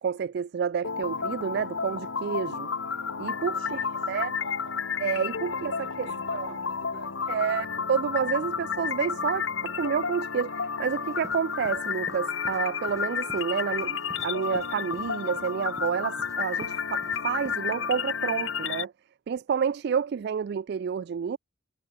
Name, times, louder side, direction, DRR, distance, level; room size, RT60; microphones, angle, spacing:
voice 1, 0.0-2.7 3.2-3.6 4.1-4.3 5.0-5.7 6.0-6.1 6.3-6.5 7.3-18.9 19.3-21.4, right 7 dB, 55° right, 0.3 m, -29 dB
sound 1, 0.8-18.8, left 6 dB, 75° left, 1.4 m, -31 dB
voice 2, 3.5-4.9 5.5-7.6 8.4-8.7, right 2 dB, 75° right, 7.2 m, -51 dB
sound 2, 10.9-17.6, right 1 dB, 15° right, 1.1 m, -49 dB
head